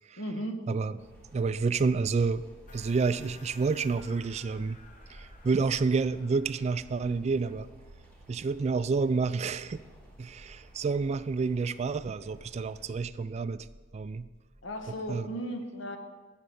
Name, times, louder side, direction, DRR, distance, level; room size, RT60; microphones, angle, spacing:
voice 1, 0.2-0.6 14.6-16.0, equal, 70° left, 5 dB, 1.3 m, -35 dB
sound 1, 1.0-13.0, right 1 dB, 10° left, 2.5 m, -56 dB
voice 2, 1.3-2.4 2.7-4.8 5.1-7.7 8.3-9.8 10.2-13.7 13.9-14.3 15.1-15.3, right 4 dB, 35° right, 14 dB, 0.3 m, -29 dB
sound 2, 2.7-7.2, left 4 dB, 40° left, 1.0 m, -55 dB
sound 3, 14.4-15.2, equal, 10° right, 1.2 m, -55 dB
8.5 x 6.7 x 7.7 m, 1.3 s
head